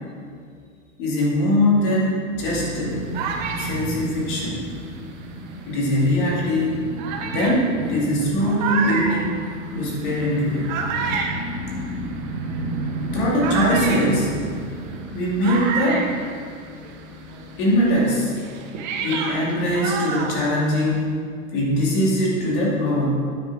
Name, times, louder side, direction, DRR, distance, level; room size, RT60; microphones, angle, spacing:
voice 1, 1.0-2.1 2.4-3.0 3.6-4.7 5.7-6.8 7.3-9.4 9.7-10.7 13.1-14.3 15.1-16.1 17.6-18.4 19.0-21.1 21.5-23.1, left 1 dB, 35° left, -4 dB, 2.5 m, -21 dB
sound 1, 2.3-17.8, equal, ahead, 1.0 m, -33 dB
sound 2, 2.7-5.7 6.4-6.5 7.0-17.0 17.3-21.0, right 5 dB, 35° right, 0.9 m, -30 dB
9.6 x 5.4 x 6.0 m, 2.1 s
supercardioid pair, 165°, 41 cm